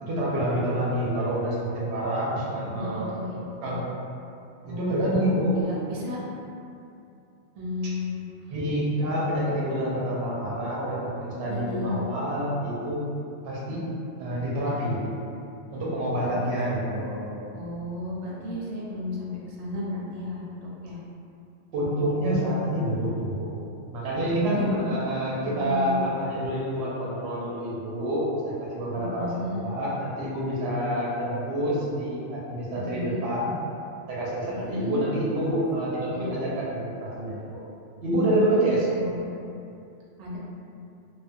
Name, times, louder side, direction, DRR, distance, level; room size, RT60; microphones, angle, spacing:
voice 1, 0.0-3.1 3.6-3.8 4.6-5.6 7.8-7.9 8.5-13.1 13.4-13.9 14.2-15.1 15.7-17.3 21.7-23.5 23.9-33.5 34.1-37.6 38.0-38.9, right 1 dB, 65° right, -6 dB, 0.8 m, -27 dB
voice 2, 2.7-3.4 3.7-3.8 4.6-5.0 5.5-6.2 7.5-8.5 11.5-12.0 16.2-16.3 17.5-21.0 24.4-24.6 25.4-26.0 29.0-29.6 32.8-33.2 34.5-35.0 36.1-36.3 38.9-39.3 40.2-40.4, left 2 dB, 90° right, -5 dB, 1.0 m, -34 dB
2.3 x 2.3 x 2.5 m, 2.6 s
omnidirectional pair, 1.3 m